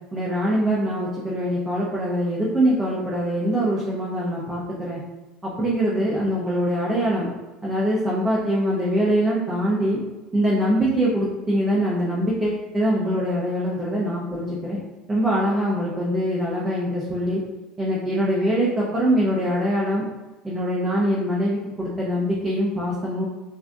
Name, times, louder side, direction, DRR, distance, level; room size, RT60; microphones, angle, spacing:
voice 1, 0.1-5.0 5.4-7.3 7.6-10.0 10.3-14.8 15.1-17.4 17.8-20.1 20.4-23.2, equal, 10° right, -6 dB, 0.6 m, -23 dB
5.8 x 2.6 x 2.4 m, 1.1 s
cardioid pair, 175°, 0 cm